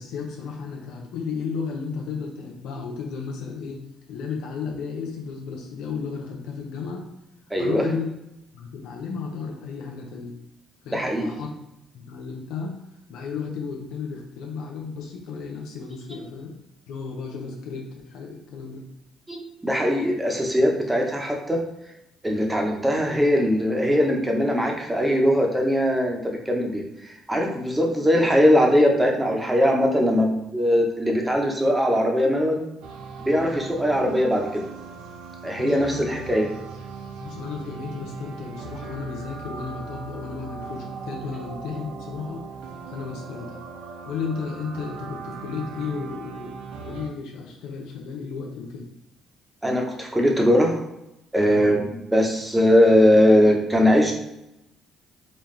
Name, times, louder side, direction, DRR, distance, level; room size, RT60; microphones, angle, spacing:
voice 1, 0.0-7.0 7.6-8.1 8.5-10.4 10.8-11.5 11.9-12.7 13.1-16.5 16.9-18.8 35.6-36.1 37.2-42.4 42.9-43.6 44.1-48.8 51.5-51.6, left 5 dB, 80° left, 0 dB, 0.6 m, -33 dB
voice 2, 7.5-7.8 10.9-11.3 19.3-21.6 22.2-26.8 27.3-32.6 33.2-34.5 35.4-36.5 49.6-50.8 51.3-54.1, equal, 10° right, 1 dB, 1.0 m, -20 dB
sound 1, 32.8-47.1, right 5 dB, 80° right, 0.5 m, -39 dB
4.2 x 2.3 x 3.3 m, 0.87 s
supercardioid pair, 65°, 0 cm